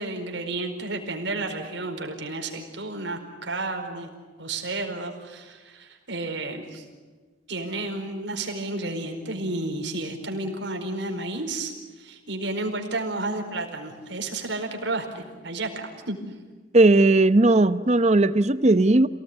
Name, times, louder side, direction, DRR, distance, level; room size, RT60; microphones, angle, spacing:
voice 1, 0.0-4.1 4.4-6.8 7.5-16.2, right 2 dB, 75° right, 3 dB, 4.7 m, -31 dB
voice 2, 16.7-19.1, right 2 dB, 35° right, 13 dB, 0.8 m, -17 dB
29.0 x 18.5 x 9.8 m, 1.4 s
head